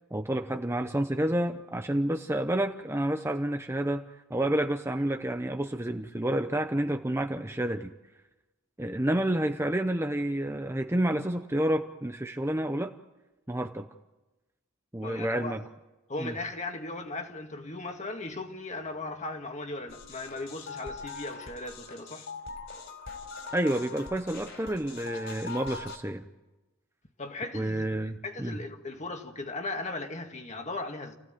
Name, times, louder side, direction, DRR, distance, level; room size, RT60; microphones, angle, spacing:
voice 1, 0.1-4.0 4.3-7.9 8.8-12.9 13.5-13.9 14.9-15.6 16.2-16.3 23.5-26.3 27.5-28.6, right 1 dB, 10° right, 0.7 m, -29 dB
voice 2, 15.0-15.6 16.1-22.3 27.2-27.9 28.2-31.2, left 2 dB, 30° left, 2.1 m, -37 dB
sound 1, 19.9-26.0, left 4 dB, 55° left, 4.5 m, -42 dB
29.5 x 16.0 x 9.3 m
head